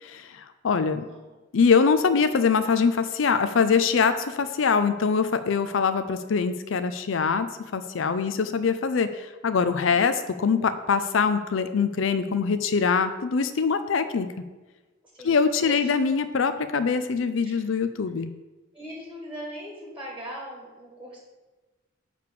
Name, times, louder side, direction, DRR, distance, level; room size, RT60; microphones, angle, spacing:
voice 1, 0.0-1.1 1.5-7.5 7.7-14.3 15.2-18.3, left 5 dB, 70° left, 11 dB, 0.5 m, -23 dB
voice 2, 0.9-1.3 9.9-10.2 15.1-15.9 17.4-17.8 18.7-21.2, right 1 dB, 5° right, -3 dB, 1.9 m, -40 dB
9.2 x 3.4 x 6.8 m, 1.2 s
head